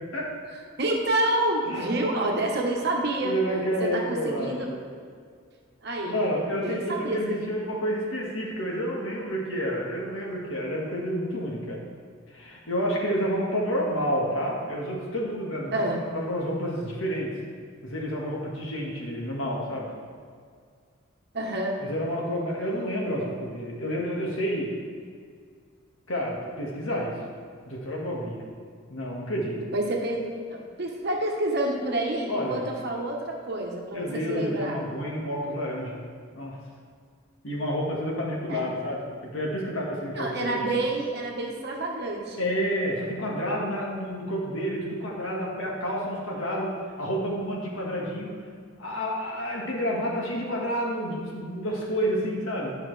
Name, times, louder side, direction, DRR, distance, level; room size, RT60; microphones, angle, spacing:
voice 1, 0.8-3.3 3.8-4.7 5.8-6.2 6.5-7.4 15.7-16.0 21.3-21.8 29.7-34.8 38.5-38.7 40.1-42.5, right 1 dB, 50° right, 0 dB, 1.2 m, -28 dB
voice 2, 3.2-4.8 6.1-11.8 12.3-17.3 17.8-19.9 21.8-24.7 26.1-27.2 27.7-28.4 28.9-29.6 32.3-32.6 33.9-36.0 36.4-36.6 37.4-40.7 42.4-48.4 48.8-52.8, equal, 70° left, -3 dB, 1.7 m, -29 dB
11.5 x 5.7 x 3.3 m, 2.1 s
head